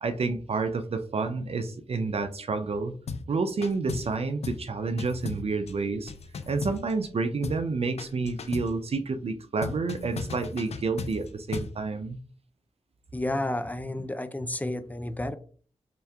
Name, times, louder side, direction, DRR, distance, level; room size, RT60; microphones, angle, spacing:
voice 1, 0.0-2.9 3.3-6.1 6.5-12.2, right 4 dB, 60° right, 8 dB, 0.5 m, -29 dB
sound 1, 3.1-3.3 3.6-4.2 4.4-4.7 5.0-7.1 7.4-7.7 8.0-8.8 9.6-11.8, left 4 dB, 65° left, 0.5 m, -36 dB
voice 2, 13.1-15.3, left 1 dB, 15° left, 10 dB, 0.5 m, -31 dB
3.3 x 3.0 x 3.5 m, 0.43 s
cardioid pair, 55°, 12 cm